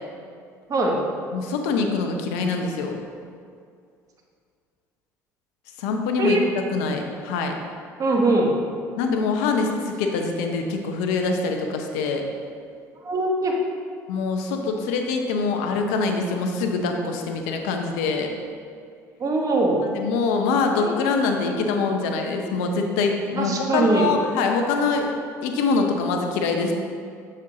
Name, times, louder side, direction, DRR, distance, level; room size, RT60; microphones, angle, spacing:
voice 1, 1.3-3.0 5.8-6.4 6.7-7.5 9.0-12.3 14.1-18.3 19.8-25.1 25.4-26.7, left 4 dB, 80° left, 4 dB, 0.6 m, -24 dB
voice 2, 8.0-8.5 13.0-13.5 19.2-19.8 20.7-21.0 23.3-24.1, right 2 dB, 45° right, 0 dB, 1.2 m, -21 dB
7.4 x 4.4 x 3.8 m, 2.3 s
hypercardioid pair, 65°, 8 cm